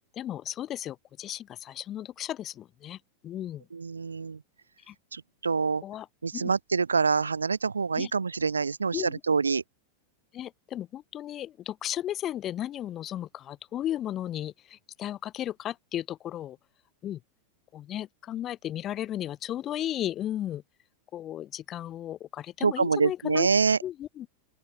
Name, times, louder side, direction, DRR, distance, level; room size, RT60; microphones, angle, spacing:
voice 1, 0.2-3.0 3.2-3.6 4.9-5.0 5.8-6.1 6.3-6.5 8.0-8.1 8.9-9.2 10.3-16.6 17.0-17.2 17.7-20.6 21.1-23.5 23.8-24.3, left 11 dB, 30° left, 6.4 m, -35 dB
voice 2, 3.7-4.4 5.1-5.8 6.2-9.6 22.6-23.8, right 5 dB, 75° right, 1.5 m, -26 dB
open air
figure-of-eight pair, 90°, 0 cm